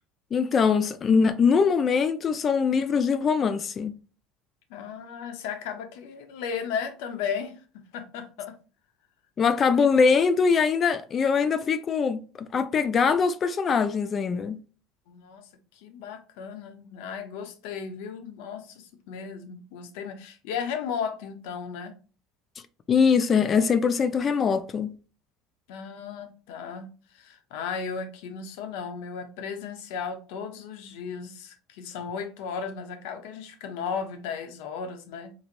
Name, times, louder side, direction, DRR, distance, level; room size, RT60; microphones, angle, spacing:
voice 1, 0.3-4.0 9.4-14.6 22.9-24.9, left 5 dB, 30° left, 0.3 m, -22 dB
voice 2, 4.7-8.6 15.1-21.9 25.7-35.4, left 6 dB, 80° left, 0.8 m, -35 dB
3.9 x 3.1 x 2.5 m
supercardioid pair, 120°, 0 cm